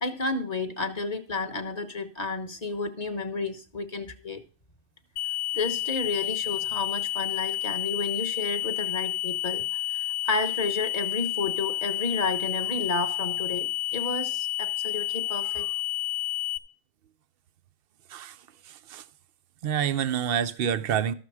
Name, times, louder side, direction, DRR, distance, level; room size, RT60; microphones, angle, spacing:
voice 1, 0.0-4.4 5.5-9.6 9.9-15.7, left 3 dB, 30° left, 0.8 m, -31 dB
sound 1, 5.2-16.6, left 14 dB, 90° left, 1.2 m, -30 dB
voice 2, 18.1-19.1 19.6-21.1, right 9 dB, 75° right, 0.5 m, -28 dB
13.0 x 6.7 x 4.7 m
omnidirectional pair, 1.7 m